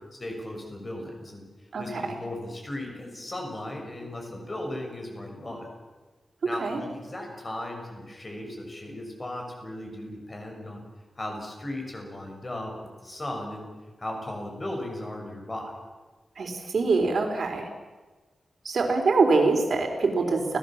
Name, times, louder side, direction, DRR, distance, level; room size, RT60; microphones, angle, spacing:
voice 1, 0.2-1.4 1.8-5.7 6.4-10.8 11.2-12.7 13.0-13.6 14.0-15.7, left 1 dB, 25° left, 2 dB, 6.3 m, -36 dB
voice 2, 1.7-2.2 6.6-6.8 16.4-17.7 18.6-20.6, right 3 dB, 60° right, 4 dB, 4.5 m, -24 dB
30.0 x 18.0 x 7.5 m, 1.3 s
wide cardioid pair, 145°, 0 cm